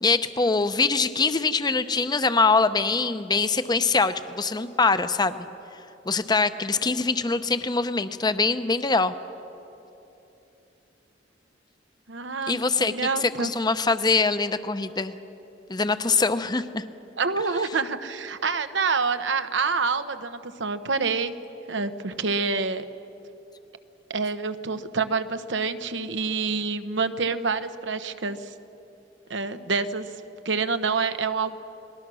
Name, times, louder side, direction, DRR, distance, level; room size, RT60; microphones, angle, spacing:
voice 1, 0.0-5.5 6.1-9.1 12.5-12.9 13.2-15.1 15.7-16.8, left 4 dB, 25° left, 11 dB, 0.7 m, -23 dB
voice 2, 12.1-13.5 17.2-21.3 21.7-22.8 24.1-28.5 29.3-30.1 30.4-31.6, right 4 dB, 85° right, 10 dB, 1.0 m, -27 dB
29.5 x 20.0 x 6.2 m, 3.0 s
head